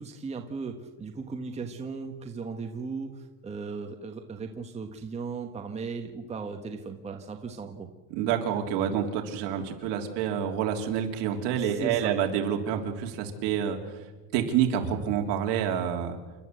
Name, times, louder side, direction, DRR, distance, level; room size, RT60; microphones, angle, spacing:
voice 1, 0.0-7.9 11.6-12.1, right 4 dB, 15° right, 4 dB, 1.4 m, -37 dB
voice 2, 8.1-13.8 14.3-16.2, right 9 dB, 55° right, 3 dB, 3.3 m, -28 dB
29.0 x 12.5 x 8.1 m, 1.2 s
cardioid pair, 150°, 50 cm